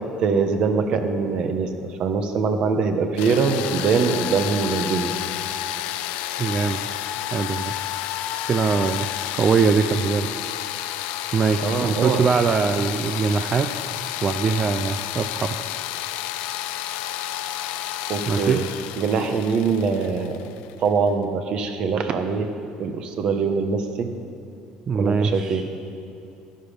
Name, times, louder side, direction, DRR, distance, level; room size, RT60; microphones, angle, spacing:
voice 1, 0.0-5.1 11.6-12.3 18.1-18.7 19.0-20.4 20.8-22.5 22.8-24.1 24.9-25.6, right 5 dB, 45° right, 7 dB, 1.0 m, -23 dB
sound 1, 3.2-20.9, left 13 dB, 80° left, 0.5 m, -30 dB
voice 2, 6.4-6.8 7.3-7.7 8.3-9.1 9.3-10.3 11.3-13.7 14.2-15.6 18.3-18.6 24.9-25.6, right 5 dB, 30° right, 8 dB, 0.4 m, -22 dB
13.0 x 10.5 x 5.1 m, 2.7 s
cardioid pair, 145°, 2 cm